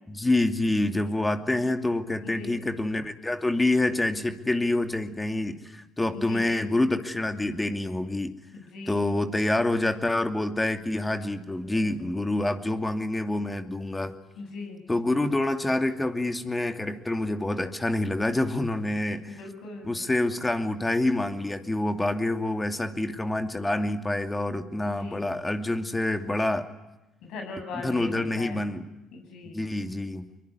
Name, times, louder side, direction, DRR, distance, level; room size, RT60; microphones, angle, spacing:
voice 1, 0.1-8.3 8.9-14.1 14.9-19.4 19.8-26.7 27.7-28.9 29.5-30.2, left 2 dB, 15° left, 7 dB, 2.7 m, -27 dB
voice 2, 2.2-2.6 6.2-6.5 8.5-9.0 14.4-14.8 19.3-19.9 24.8-25.2 27.2-28.6 29.1-29.6, left 3 dB, 70° left, 4 dB, 7.9 m, -39 dB
23.5 x 23.0 x 9.7 m, 0.97 s
hypercardioid pair, 55°, 0 cm